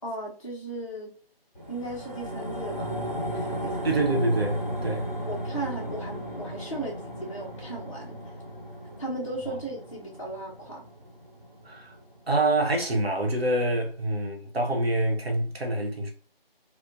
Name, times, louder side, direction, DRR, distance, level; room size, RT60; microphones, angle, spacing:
voice 1, 0.0-1.1 1.7-3.9 5.3-8.3 9.0-10.8, right 2 dB, 35° left, 0.4 m, -36 dB
sound 1, 1.5-12.1 12.5-12.6, equal, 15° left, 1.0 m, -35 dB
voice 2, 3.8-5.1 9.5-9.6 11.6-11.9 12.3-16.1, right 1 dB, 85° right, 0.8 m, -26 dB
2.4 x 2.1 x 2.6 m
figure-of-eight pair, 165°, 30 cm